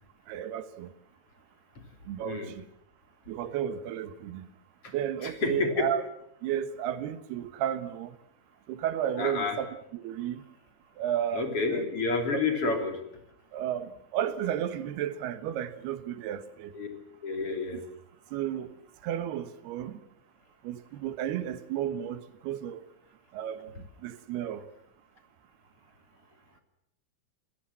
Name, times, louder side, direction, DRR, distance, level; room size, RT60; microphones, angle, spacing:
voice 1, 0.3-0.9 2.1-2.6 3.3-4.5 4.9-6.0 6.4-8.2 8.7-9.7 9.9-10.4 11.0-11.8 12.3-12.7 13.5-16.7 17.7-17.8 18.3-18.8 19.0-20.0 20.6-22.8 23.3-23.7 24.0-24.6, right 10 dB, 90° right, 3.4 m, -33 dB
voice 2, 2.2-2.5 4.8-4.9 5.2-5.9 9.2-9.6 11.3-13.0 16.7-16.9 17.2-17.8, left 4 dB, 40° left, 4.0 m, -29 dB
28.0 x 17.5 x 7.6 m
omnidirectional pair, 4.4 m